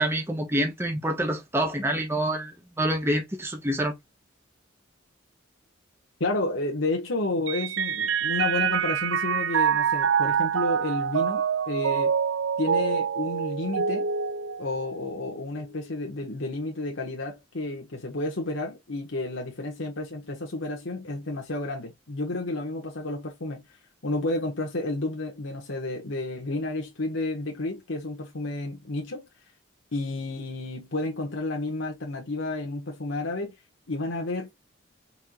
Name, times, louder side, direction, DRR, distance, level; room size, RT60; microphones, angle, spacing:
voice 1, 0.0-4.0, right 1 dB, 15° right, 1.2 m, -27 dB
voice 2, 6.2-12.2 12.6-14.1 14.6-23.6 24.0-29.2 29.9-33.5 33.9-34.5, left 2 dB, 80° left, 1.4 m, -31 dB
Mallet percussion, 7.5-15.2, right 7 dB, 75° right, 0.5 m, -26 dB
4.8 x 4.3 x 2.3 m
head